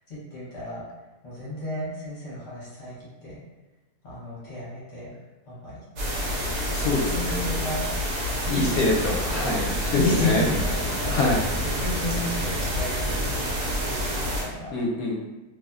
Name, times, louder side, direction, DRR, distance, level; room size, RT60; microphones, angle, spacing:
voice 1, 0.1-0.8 1.2-3.4 4.0-5.1 5.5-7.8 8.4-9.1 9.9-14.7, left 1 dB, 50° left, -9 dB, 1.0 m, -33 dB
sound 1, 6.0-14.4, equal, 85° right, 1.2 m, -28 dB
voice 2, 6.7-7.4 8.5-10.4 11.1-11.4 14.7-15.2, left 2 dB, 75° left, -2 dB, 1.0 m, -25 dB
sound 2, 8.7-13.8, left 1 dB, 70° right, 1.0 m, -36 dB
2.8 x 2.0 x 2.3 m, 1.1 s
omnidirectional pair, 1.7 m